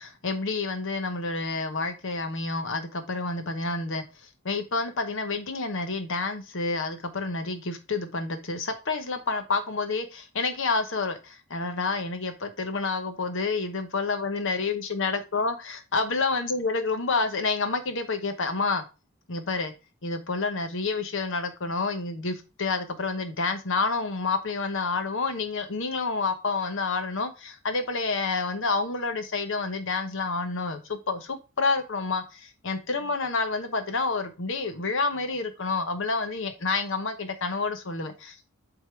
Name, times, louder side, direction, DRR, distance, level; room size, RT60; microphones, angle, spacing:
voice 1, 0.0-4.0 4.4-18.8 19.3-19.7 20.0-38.5, left 3 dB, 60° left, 1.0 m, -29 dB
7.9 x 3.7 x 4.5 m
head